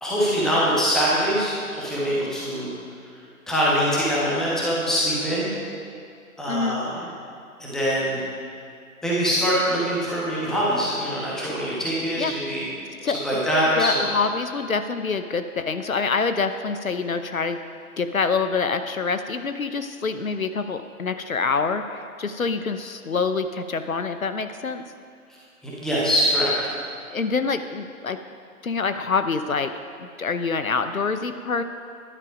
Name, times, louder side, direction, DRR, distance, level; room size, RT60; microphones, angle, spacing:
voice 1, 0.0-2.7 3.5-5.5 6.4-7.0 7.6-8.2 9.0-12.6 13.2-14.1 25.6-26.5, equal, ahead, -7 dB, 1.1 m, -23 dB
voice 2, 6.5-6.8 12.2-12.3 13.0-13.4 13.7-17.6 18.0-24.8 27.1-28.2 28.6-29.7 30.0-31.6, left 4 dB, 65° left, 9 dB, 0.9 m, -26 dB
14.0 x 11.0 x 5.1 m, 2.4 s
figure-of-eight pair, 140°, 44 cm